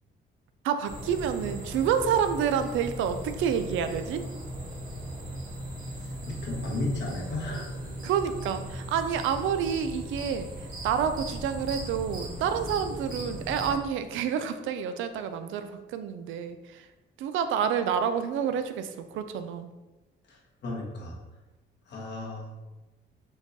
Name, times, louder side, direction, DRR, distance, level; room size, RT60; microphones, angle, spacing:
voice 1, 0.6-4.2 8.0-10.5 10.8-16.9 17.2-19.7, right 8 dB, 80° right, 9 dB, 0.4 m, -28 dB
sound 1, 0.8-13.8, equal, 45° right, 1.4 m, -38 dB
voice 2, 5.9-7.9 20.3-21.2 21.9-22.5, left 2 dB, 60° left, -2 dB, 1.3 m, -35 dB
4.6 x 2.3 x 4.0 m, 1.1 s
cardioid pair, 90°, 20 cm